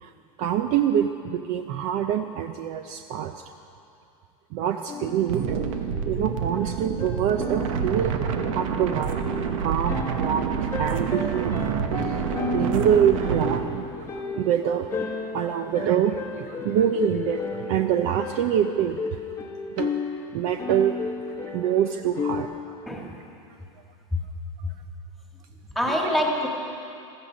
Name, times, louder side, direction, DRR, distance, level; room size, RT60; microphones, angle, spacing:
voice 1, 0.4-3.3 4.5-5.5 6.1-9.2 9.6-11.5 12.0-12.1 12.5-13.8 14.2-14.9 15.3-19.0 19.8-19.9 20.3-21.0 21.5-22.5, right 9 dB, 45° right, 7 dB, 0.6 m, -25 dB
sound 1, 4.9-22.4, left 4 dB, 15° left, 1.0 m, -34 dB
sound 2, 5.3-13.6, right 7 dB, 75° right, 1.2 m, -28 dB
voice 2, 25.8-26.5, left 1 dB, ahead, -1 dB, 1.8 m, -25 dB
15.5 x 14.0 x 5.2 m, 2.6 s
supercardioid pair, 150°, 17 cm